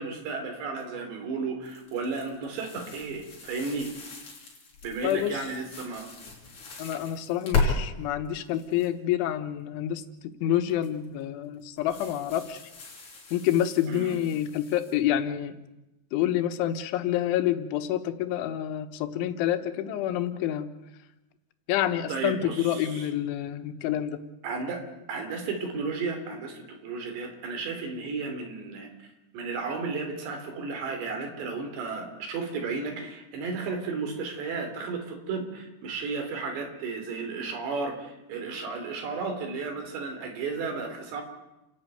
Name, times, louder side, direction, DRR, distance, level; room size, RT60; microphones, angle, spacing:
voice 1, 0.0-3.9 4.8-6.1 13.9-14.2 22.1-23.1 24.4-24.8 25.1-28.9 29.3-41.2, right 4 dB, 70° right, 4 dB, 5.3 m, -33 dB
sound 1, 1.6-7.7 8.2-8.9 10.7-11.0 11.8-15.0, left 4 dB, 40° left, 6.2 m, -35 dB
voice 2, 5.0-5.4 6.8-10.0 10.4-12.6 13.3-15.6 16.1-20.7 21.7-24.2, left 11 dB, 90° left, 10 dB, 3.6 m, -28 dB
29.0 x 11.5 x 9.3 m, 0.97 s
omnidirectional pair, 5.3 m